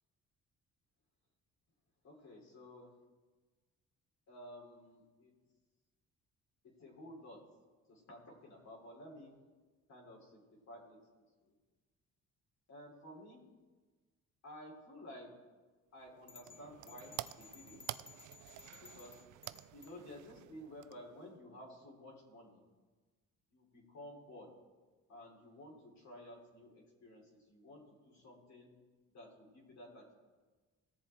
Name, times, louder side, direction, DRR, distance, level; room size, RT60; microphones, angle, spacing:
voice 1, 2.0-2.9 4.3-5.3 6.8-7.4 7.9-9.4 9.9-11.0 11.4-11.5 12.7-13.5 14.4-15.4 15.9-17.8 18.8-19.2 19.7-22.6 23.5-24.5 25.1-28.7 29.1-30.1, left 1 dB, 65° left, -2 dB, 3.4 m, -53 dB
sound 1, 16.0-21.4, right 15 dB, 75° right, 0.4 m, -49 dB
sound 2, 16.3-20.0, left 5 dB, 20° left, 0.6 m, -57 dB
19.0 x 6.9 x 4.4 m, 1.3 s
cardioid pair, 90°, 30 cm